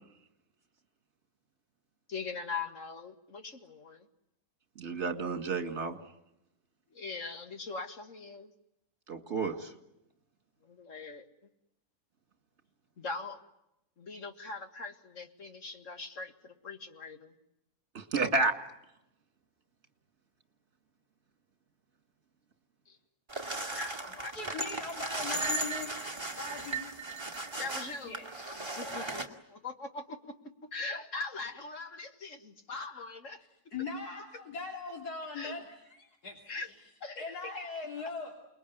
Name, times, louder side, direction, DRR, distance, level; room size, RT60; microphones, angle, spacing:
voice 1, 2.1-4.1 6.9-8.5 10.6-11.3 13.0-13.4 14.0-17.3 22.9-23.0 23.7-24.7 27.6-28.2 28.6-30.3 30.7-33.4 35.3-35.5 36.5-36.7 37.0-37.7, left 4 dB, 55° left, 7 dB, 2.2 m, -41 dB
voice 2, 4.8-6.0 9.1-9.7 17.9-18.5, right 4 dB, 45° right, 7 dB, 2.5 m, -30 dB
sound 1, 23.3-29.3, right 2 dB, 15° right, 2.2 m, -36 dB
voice 3, 24.3-25.9 26.4-26.9 28.0-28.3 33.7-36.7 37.2-38.3, left 4 dB, 90° left, 1 dB, 3.5 m, -40 dB
29.0 x 21.0 x 9.5 m, 0.86 s
omnidirectional pair, 1.6 m